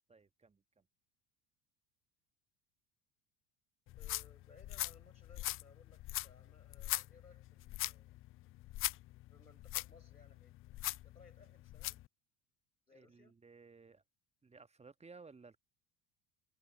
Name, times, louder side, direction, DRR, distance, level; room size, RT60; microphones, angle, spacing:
voice 1, 0.1-0.8 12.9-14.0 14.4-15.6, right 4 dB, 15° right, 1.5 m, -58 dB
voice 2, 3.9-8.1 9.3-10.5 11.0-12.0 12.9-13.3, left 4 dB, 85° left, 4.9 m, -63 dB
sound 1, 3.9-12.1, left 16 dB, 30° left, 0.6 m, -42 dB
figure-of-eight pair, 70°, 45 cm